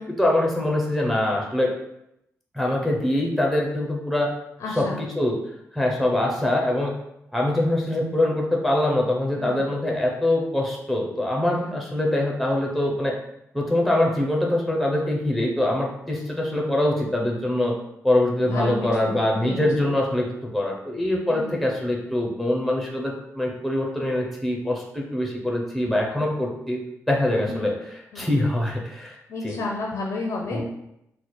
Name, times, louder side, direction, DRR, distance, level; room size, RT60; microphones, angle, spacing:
voice 1, 0.0-1.7 2.5-4.3 4.8-5.4 5.7-6.9 7.3-13.1 13.5-17.7 18.0-20.3 20.5-26.8 27.1-29.2 29.4-29.5 30.5-30.6, left 1 dB, ahead, -1 dB, 0.5 m, -24 dB
voice 2, 4.6-5.0 9.4-9.6 11.6-11.8 18.5-19.9 21.3-21.6 27.3-27.7 28.1-28.3 29.3-30.6, left 3 dB, 70° left, 0 dB, 0.5 m, -32 dB
3.1 x 2.1 x 4.1 m, 0.82 s
wide cardioid pair, 180°, 6 cm